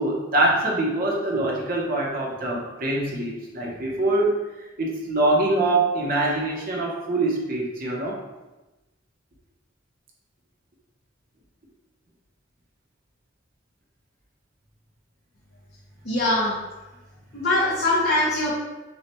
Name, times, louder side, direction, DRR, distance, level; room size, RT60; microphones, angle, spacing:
voice 1, 0.0-8.2, right 2 dB, 50° right, -2 dB, 0.9 m, -24 dB
voice 2, 16.0-16.5 17.3-18.5, left 1 dB, 55° left, -7 dB, 0.9 m, -22 dB
6.2 x 2.4 x 3.0 m, 1.1 s
head